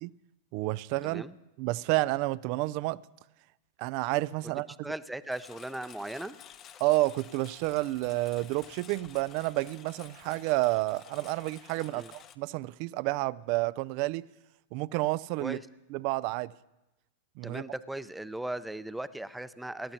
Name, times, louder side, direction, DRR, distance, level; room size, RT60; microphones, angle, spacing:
voice 1, 0.5-1.2 1.6-3.0 3.8-4.7 6.8-14.3 14.7-15.6 15.9-16.5 17.4-17.6, right 20 dB, 50° right, 0.4 m, -30 dB
voice 2, 1.0-1.3 4.8-6.4 11.9-12.1 15.4-15.6 17.4-19.9, right 1 dB, 5° right, 0.7 m, -38 dB
Engine, 5.3-12.4, left 9 dB, 35° left, 1.0 m, -52 dB
26.5 x 13.0 x 2.8 m
figure-of-eight pair, 95°, 0 cm